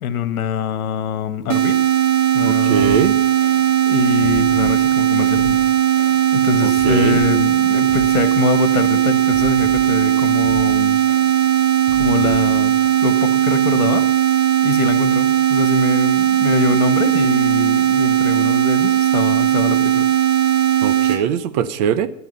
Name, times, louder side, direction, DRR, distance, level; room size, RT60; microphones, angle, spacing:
voice 1, 0.0-1.8 2.3-3.1 3.9-5.6 6.3-11.0 12.0-14.1 14.6-20.1, left 8 dB, 90° left, 1.8 m, -24 dB
sound 1, 1.5-21.2, right 11 dB, 60° right, 2.2 m, -17 dB
voice 2, 2.4-3.2 6.6-7.2 20.8-22.1, right 9 dB, 30° right, 0.7 m, -21 dB
Drum kit, 2.8-13.0, right 3 dB, 10° right, 6.1 m, -38 dB
13.5 x 10.5 x 5.6 m
supercardioid pair, 160°, 43 cm